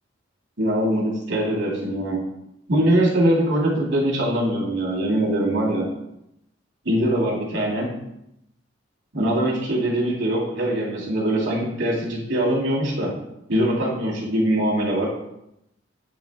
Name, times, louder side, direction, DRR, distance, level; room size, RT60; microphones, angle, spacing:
voice 1, 0.6-2.2 2.7-5.8 6.8-7.9 9.1-13.1 13.5-15.1, right 1 dB, 85° right, -4 dB, 2.2 m, -22 dB
9.3 x 3.2 x 3.4 m, 0.82 s
head